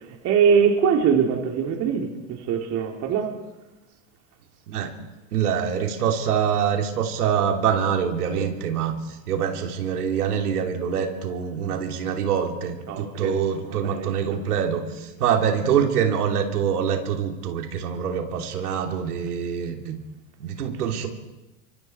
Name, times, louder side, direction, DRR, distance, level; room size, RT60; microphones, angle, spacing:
voice 1, 0.2-3.3 8.3-8.4 12.9-13.3 13.7-14.4, right 7 dB, 35° right, 3.4 m, -22 dB
voice 2, 5.3-8.9 9.3-20.0 20.4-21.1, right 8 dB, 90° right, 3.3 m, -25 dB
29.5 x 25.0 x 4.6 m
supercardioid pair, 140°, 44 cm